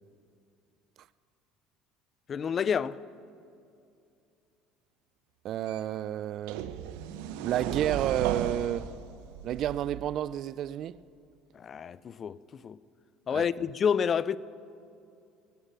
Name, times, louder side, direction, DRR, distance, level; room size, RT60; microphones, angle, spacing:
voice 1, 2.3-3.0 11.5-12.4 12.6-12.8 13.3-14.4, left 7 dB, 40° left, 0.5 m, -28 dB
voice 2, 5.4-6.6 7.4-9.0 9.4-11.0 13.3-13.5, right 11 dB, 55° right, 0.4 m, -30 dB
sound 1, 5.7-5.8 6.5-10.2, right 9 dB, 80° right, 0.8 m, -35 dB
21.5 x 9.0 x 6.8 m
supercardioid pair, 85°, 0 cm